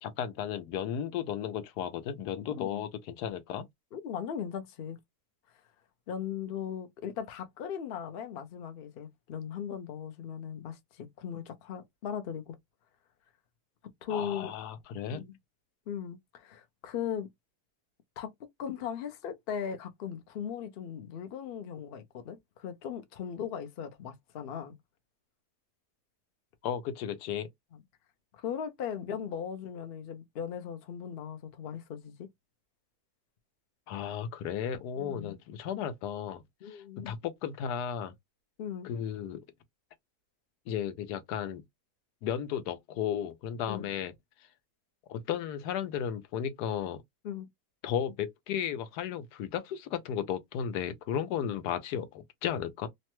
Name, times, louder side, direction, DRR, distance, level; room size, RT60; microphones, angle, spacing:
voice 1, 0.0-3.7 14.1-15.2 26.6-27.5 33.9-38.1 38.8-39.4 40.7-41.6 42.2-44.1 45.1-47.0 47.8-52.9, left 9 dB, 85° left, 1.2 m, -34 dB
voice 2, 2.5-2.8 3.9-5.0 6.1-12.6 14.0-14.5 15.1-15.4 15.9-17.3 18.2-24.8 27.7-27.8 28.3-32.3 35.0-35.4 36.6-37.1 38.6-38.9 43.7-43.9 47.2-47.5, left 8 dB, 60° left, 0.6 m, -38 dB
3.0 x 2.2 x 2.9 m
omnidirectional pair, 1.7 m